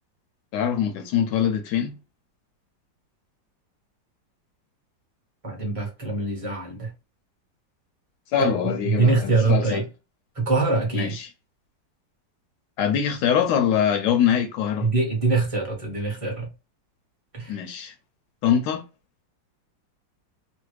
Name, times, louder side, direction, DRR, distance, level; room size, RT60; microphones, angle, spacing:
voice 1, 0.5-2.0 8.3-9.8 10.9-11.3 12.8-14.9 17.5-17.9 18.4-18.8, left 8 dB, 75° left, 1.2 m, -23 dB
voice 2, 5.4-6.9 8.4-9.9 10.3-11.2 14.8-16.5 17.3-17.6, right 3 dB, 25° right, 0.7 m, -24 dB
3.1 x 2.2 x 3.2 m
omnidirectional pair, 2.0 m